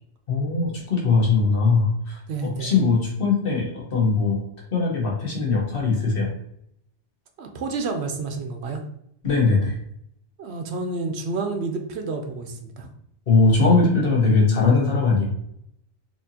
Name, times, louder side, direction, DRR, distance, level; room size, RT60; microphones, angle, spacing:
voice 1, 0.3-4.4 4.7-6.3 9.2-9.7 13.3-15.3, left 4 dB, 55° left, -3 dB, 1.2 m, -20 dB
voice 2, 2.3-2.7 7.4-8.8 10.4-12.9, right 3 dB, 70° right, 4 dB, 0.8 m, -29 dB
4.3 x 2.7 x 2.7 m, 0.72 s
omnidirectional pair, 1.2 m